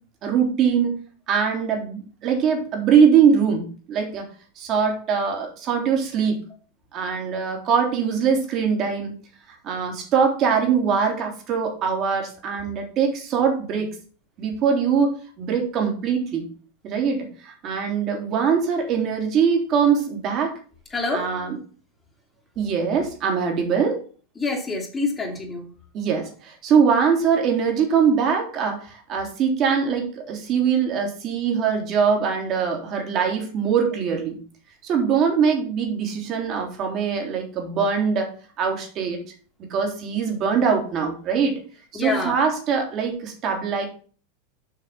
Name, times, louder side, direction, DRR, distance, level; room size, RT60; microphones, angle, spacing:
voice 1, 0.2-0.9 1.3-4.2 4.6-6.4 6.9-9.1 9.5-13.9 14.4-16.4 16.8-20.5 21.1-21.6 22.6-24.0 25.9-34.4 34.8-38.3 38.6-39.2 39.7-41.6 41.9-43.9, right 6 dB, 40° right, 3 dB, 3.2 m, -22 dB
voice 2, 20.9-21.3 24.4-25.7 41.9-42.4, left 3 dB, 20° left, -3 dB, 2.4 m, -26 dB
7.5 x 5.9 x 5.6 m, 0.40 s
figure-of-eight pair, 85°, 0 cm